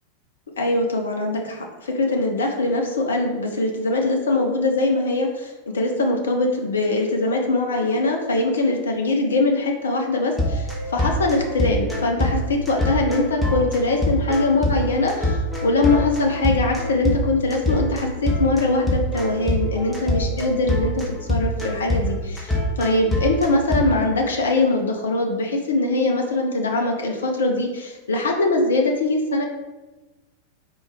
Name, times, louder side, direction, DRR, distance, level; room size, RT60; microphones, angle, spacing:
voice 1, 0.6-29.5, left 2 dB, 70° left, 2 dB, 0.5 m, -22 dB
sound 1, 10.4-23.8, left 1 dB, ahead, 1.0 m, -24 dB
4.1 x 3.0 x 3.5 m, 1.2 s
figure-of-eight pair, 90°, 0 cm